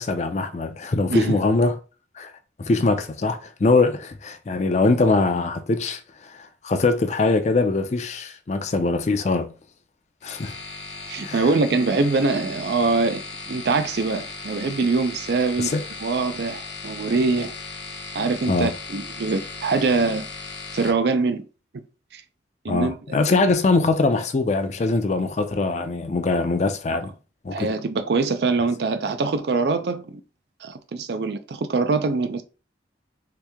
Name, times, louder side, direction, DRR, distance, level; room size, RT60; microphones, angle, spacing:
voice 1, 0.0-1.8 2.2-2.3 2.6-9.5 10.2-10.5 11.2-11.4 15.6-15.8 18.5-18.7 22.7-27.1 27.4-27.7, left 3 dB, 40° left, 0.4 m, -22 dB
sound 1, 10.2-20.9, left 4 dB, 90° left, 0.7 m, -37 dB
voice 2, 11.1-15.7 16.0-17.5 18.1-20.3 20.7-21.4 22.1-22.2 22.6-22.9 27.5-30.2 30.6-32.4, right 3 dB, 65° right, 0.4 m, -23 dB
2.9 x 2.7 x 3.4 m
head